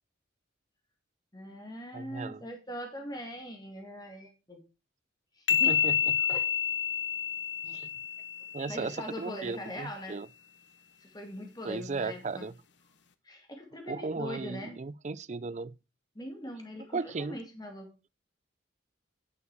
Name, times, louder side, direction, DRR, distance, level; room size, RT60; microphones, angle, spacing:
voice 1, 1.3-4.6 5.3-5.9 6.3-6.5 8.7-10.2 11.0-12.5 13.2-14.8 16.2-17.9, equal, 20° left, 2.1 m, -41 dB
voice 2, 1.9-2.4 5.5-6.0 7.6-7.9 8.5-10.3 11.6-12.5 13.9-15.8 16.9-17.4, right 4 dB, 35° right, 0.4 m, -36 dB
sound 1, 5.5-9.0, left 8 dB, 65° left, 0.8 m, -29 dB
9.8 x 6.5 x 4.7 m
head